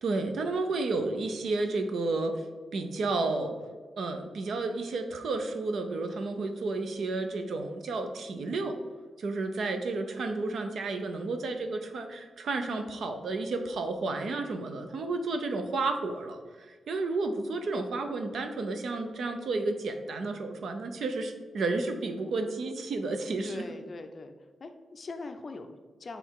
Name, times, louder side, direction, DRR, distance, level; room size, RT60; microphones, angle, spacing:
voice 1, 0.0-2.4 2.7-3.6 4.0-8.8 9.2-23.6, right 3 dB, 65° right, 6 dB, 0.7 m, -31 dB
voice 2, 23.4-24.3 24.6-26.2, left 3 dB, 35° left, 7 dB, 0.5 m, -42 dB
7.8 x 3.4 x 4.7 m, 1.4 s
wide cardioid pair, 180°, 0 cm